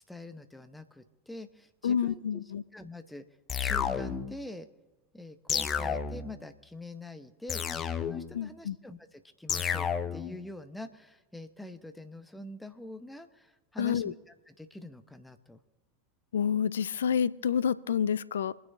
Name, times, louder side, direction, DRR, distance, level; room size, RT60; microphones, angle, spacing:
voice 1, 0.1-2.4 2.7-3.3 3.6-4.7 5.1-7.6 8.0-14.1 14.5-15.6, left 1 dB, 5° left, 8 dB, 1.2 m, -45 dB
voice 2, 1.8-2.6 8.3-8.8 13.8-14.1 16.3-18.5, left 8 dB, 75° left, 18 dB, 0.4 m, -28 dB
sound 1, 3.5-4.4 5.5-6.4 7.5-8.4 9.5-10.4, left 7 dB, 30° left, 0.8 m, -31 dB
27.0 x 10.0 x 2.8 m, 1.2 s
figure-of-eight pair, 85°, 0 cm